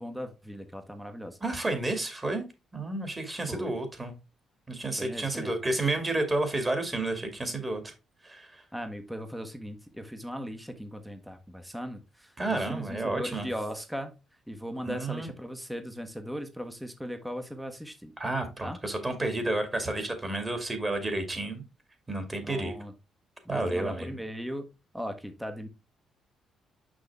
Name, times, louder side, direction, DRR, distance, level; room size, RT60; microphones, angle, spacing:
voice 1, 0.0-1.4 3.5-3.7 5.0-5.5 8.7-14.1 14.5-18.1 18.6-18.8 22.4-22.9 23.4-25.7, equal, 5° right, 7 dB, 1.2 m, -38 dB
voice 2, 1.4-2.4 2.7-4.1 4.7-7.9 8.2-8.6 12.4-13.5 14.8-15.3 18.2-21.6 22.1-22.7 23.5-24.1, right 2 dB, 25° right, 6 dB, 2.2 m, -31 dB
6.3 x 5.7 x 3.5 m, 0.26 s
cardioid pair, 90°, 0 cm